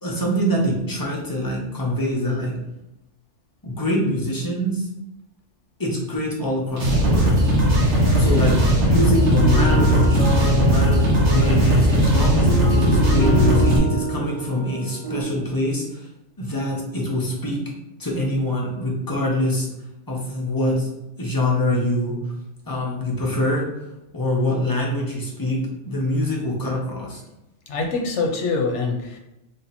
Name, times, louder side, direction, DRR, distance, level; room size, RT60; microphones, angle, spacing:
voice 1, 0.0-2.5 3.6-4.9 5.8-7.3 8.2-16.1 16.4-17.6 18.0-19.7 20.1-20.9 21.2-22.2 22.7-23.7 24.1-25.6 25.8-27.2, left 1 dB, 20° left, -3 dB, 0.7 m, -24 dB
sound 1, 6.7-13.8, equal, 60° right, 1.2 m, -17 dB
sound 2, 8.0-15.2, right 2 dB, 40° right, 1.1 m, -30 dB
voice 2, 27.7-29.2, left 4 dB, 65° left, 1 dB, 1.0 m, -24 dB
3.4 x 2.8 x 4.2 m, 0.91 s
omnidirectional pair, 1.3 m